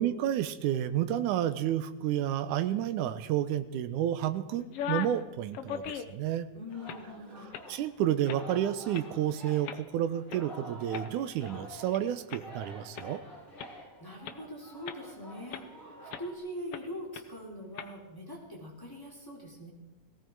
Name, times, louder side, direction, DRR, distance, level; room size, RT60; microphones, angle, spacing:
voice 1, 0.0-6.5 7.7-13.2, right 11 dB, 75° right, 11 dB, 2.2 m, -30 dB
sound 1, 4.6-5.2 5.5-6.3 6.7-7.1 7.5-7.7 8.3-8.5 8.9-9.0 9.6-9.8 10.3-10.4 10.9-12.0 12.3-12.4 12.9-13.0 13.6-13.7 14.2-14.4 14.9-15.1 15.5-15.6 16.1-16.3 16.7-16.8 17.1-17.2 17.7-17.9, left 9 dB, 80° left, 1.3 m, -38 dB
voice 2, 6.5-7.5 13.6-19.7, equal, 5° left, -3 dB, 3.0 m, -43 dB
Singing, 6.7-16.4, right 1 dB, 25° left, 6.4 m, -48 dB
18.5 x 16.5 x 4.6 m, 1.0 s
omnidirectional pair, 3.8 m